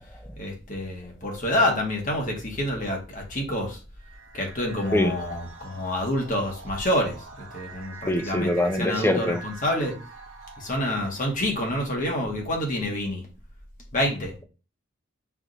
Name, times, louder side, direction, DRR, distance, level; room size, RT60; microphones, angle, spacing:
voice 1, 0.4-3.8 4.3-9.9 10.6-13.2 13.9-14.3, left 1 dB, 40° left, 1 dB, 1.2 m, -27 dB
sound 1, 4.0-11.6, right 3 dB, 80° right, 1.0 m, -45 dB
voice 2, 8.1-9.4, left 1 dB, 10° left, 7 dB, 0.4 m, -24 dB
4.7 x 2.5 x 3.8 m, 0.34 s
head